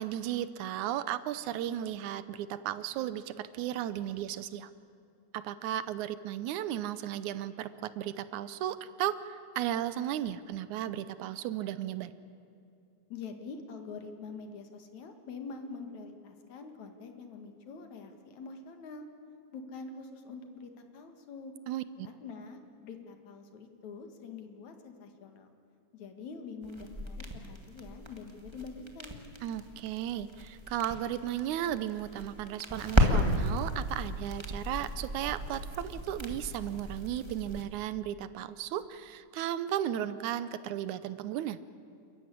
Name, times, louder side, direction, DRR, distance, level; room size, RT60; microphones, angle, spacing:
voice 1, 0.0-4.7 5.3-12.1 21.7-22.1 29.4-41.6, right 11 dB, 80° right, 14 dB, 2.2 m, -35 dB
voice 2, 13.1-19.1 19.5-21.5 22.0-25.5 25.9-29.3, left 4 dB, 70° left, 6 dB, 3.1 m, -45 dB
sound 1, 26.6-37.6, equal, 15° right, 1.3 m, -34 dB
29.5 x 14.0 x 9.8 m, 2.5 s
omnidirectional pair, 3.5 m